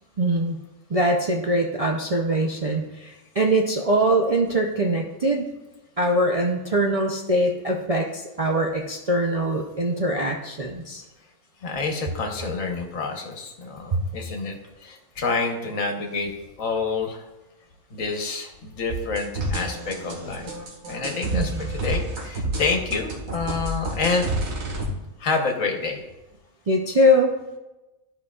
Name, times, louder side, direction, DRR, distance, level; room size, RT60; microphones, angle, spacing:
voice 1, 0.2-0.6 0.9-5.5 6.0-11.0 13.9-14.0 21.3-21.5 26.7-27.3, right 1 dB, 45° right, -1 dB, 0.4 m, -22 dB
voice 2, 11.6-16.3 16.6-17.3 17.9-20.5 20.9-24.3 25.2-26.0, left 4 dB, 70° left, 3 dB, 1.4 m, -28 dB
sound 1, 18.9-24.9, right 1 dB, 80° right, 1.9 m, -29 dB
13.0 x 5.0 x 2.4 m, 1.0 s
omnidirectional pair, 1.4 m